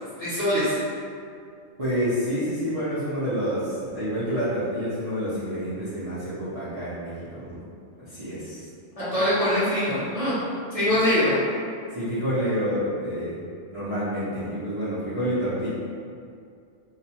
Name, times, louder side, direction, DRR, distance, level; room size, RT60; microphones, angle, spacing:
voice 1, 0.2-0.7 9.1-10.3 10.7-11.3, left 1 dB, 30° left, -13 dB, 0.9 m, -23 dB
voice 2, 1.8-7.6 8.1-8.6 10.9-11.0 11.9-13.4 13.7-15.7, equal, 40° right, -15 dB, 0.6 m, -28 dB
2.5 x 2.2 x 2.8 m, 2.3 s
omnidirectional pair, 1.3 m